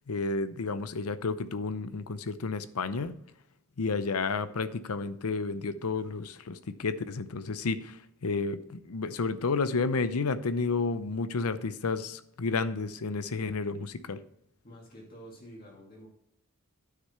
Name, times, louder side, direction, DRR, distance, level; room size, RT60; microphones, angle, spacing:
voice 1, 0.1-3.2 3.8-14.2, left 4 dB, 90° left, 13 dB, 0.7 m, -31 dB
voice 2, 14.6-16.1, equal, 45° left, -3 dB, 2.3 m, -49 dB
9.5 x 6.5 x 4.4 m, 0.80 s
head